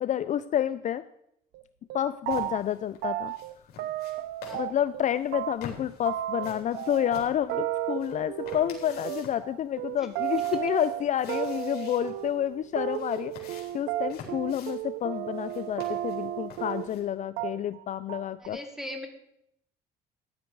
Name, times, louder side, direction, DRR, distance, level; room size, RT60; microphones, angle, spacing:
voice 1, 0.0-1.0 1.9-3.3 4.5-18.6, left 10 dB, 45° left, 13 dB, 0.5 m, -29 dB
sound 1, 1.5-1.6 1.9-2.7 3.0-5.0 5.3-17.1 17.4-17.8 18.1-18.5, right 13 dB, 85° right, 0.8 m, -33 dB
sound 2, 2.3-17.0, left 6 dB, 65° left, 3.8 m, -49 dB
voice 2, 18.4-19.1, left 1 dB, 5° right, 3 dB, 2.7 m, -39 dB
14.5 x 10.5 x 4.7 m, 0.76 s
cardioid pair, 110°, 17 cm